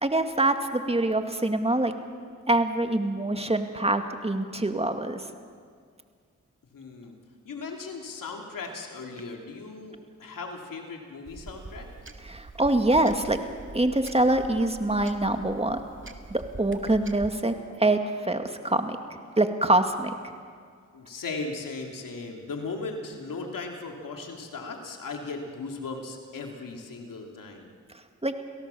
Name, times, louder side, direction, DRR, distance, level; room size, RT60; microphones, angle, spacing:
voice 1, 0.0-1.9 2.5-5.2 12.2-13.4 13.7-15.8 16.3-19.0 19.4-20.1 28.2-28.3, right 2 dB, 20° right, 6 dB, 2.3 m, -25 dB
voice 2, 6.7-7.2 7.4-11.9 20.9-27.7, left 3 dB, 85° left, 2 dB, 3.1 m, -37 dB
sound 1, 11.3-17.3, right 3 dB, 40° right, 2.0 m, -44 dB
28.5 x 17.5 x 7.1 m, 2.1 s
cardioid pair, 45°, 32 cm